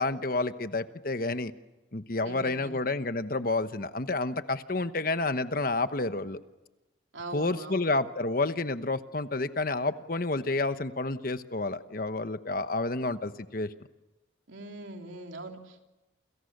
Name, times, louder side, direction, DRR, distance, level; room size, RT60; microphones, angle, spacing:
voice 1, 0.0-1.5 1.9-6.4 7.3-13.7, left 2 dB, 45° left, 11 dB, 1.1 m, -30 dB
voice 2, 2.2-2.8 7.1-7.8 14.5-15.9, right 2 dB, 80° right, 3 dB, 3.2 m, -42 dB
29.0 x 29.0 x 6.7 m, 1.0 s
head